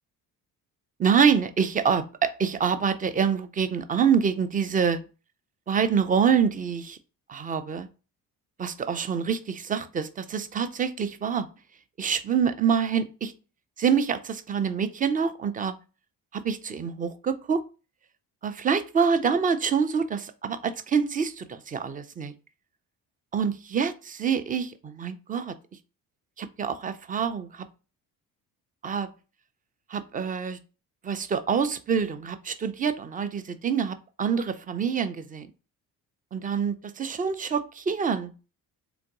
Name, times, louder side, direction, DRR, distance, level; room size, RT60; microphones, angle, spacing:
voice 1, 1.0-5.0 5.7-7.0 7.3-7.9 8.6-11.5 12.0-13.3 13.8-15.7 16.3-17.6 18.4-22.3 23.3-25.5 26.4-27.6 28.8-29.1 29.9-30.6 31.0-35.5 36.3-38.3, right 6 dB, 20° right, 0.4 m, -26 dB
3.8 x 2.5 x 3.9 m
figure-of-eight pair, 45°, 49 cm